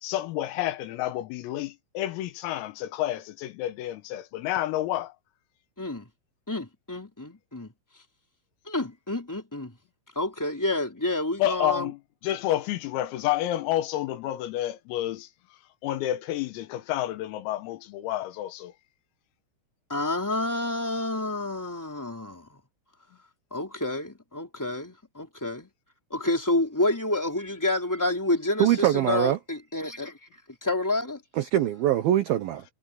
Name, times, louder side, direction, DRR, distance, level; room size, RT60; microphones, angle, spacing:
voice 1, 0.0-5.1 11.4-15.3 15.8-18.7, left 14 dB, 90° left, 4.1 m, -29 dB
voice 2, 5.8-6.1 6.5-7.7 8.7-9.7 10.1-11.9 19.9-22.6 23.5-25.7 26.1-30.2 30.6-31.2, left 2 dB, 5° left, 2.6 m, -29 dB
voice 3, 28.6-29.4 31.4-32.6, right 12 dB, 85° right, 2.1 m, -23 dB
omnidirectional pair, 5.9 m